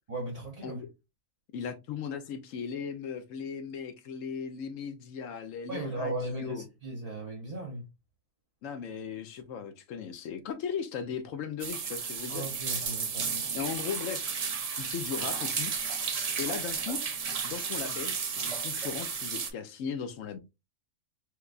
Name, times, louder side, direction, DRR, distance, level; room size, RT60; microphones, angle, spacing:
voice 1, 0.1-0.8 5.7-7.9 12.3-13.4, right 2 dB, 35° right, 0.7 m, -37 dB
voice 2, 1.5-6.7 8.6-12.5 13.5-14.3 14.8-15.7 16.4-17.0 17.4-20.4, left 7 dB, 70° left, 1.0 m, -37 dB
sound 1, 11.6-19.5, right 6 dB, 90° right, 0.3 m, -33 dB
4.6 x 2.3 x 2.4 m
omnidirectional pair, 1.4 m